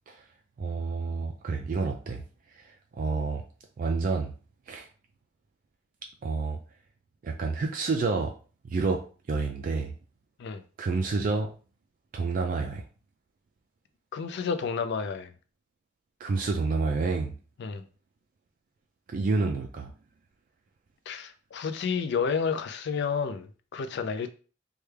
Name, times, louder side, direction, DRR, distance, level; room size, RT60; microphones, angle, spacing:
voice 1, 0.6-2.2 2.5-3.4 3.8-4.3 4.7-4.9 6.2-6.6 7.2-8.3 8.6-9.0 9.3-9.9 10.8-11.5 12.1-12.8 16.2-17.3 19.1-19.9, right 4 dB, 45° right, 0.3 m, -29 dB
voice 2, 14.1-15.3 17.6-17.8 21.1-24.3, left 6 dB, 60° left, 0.4 m, -30 dB
3.2 x 2.3 x 3.2 m
head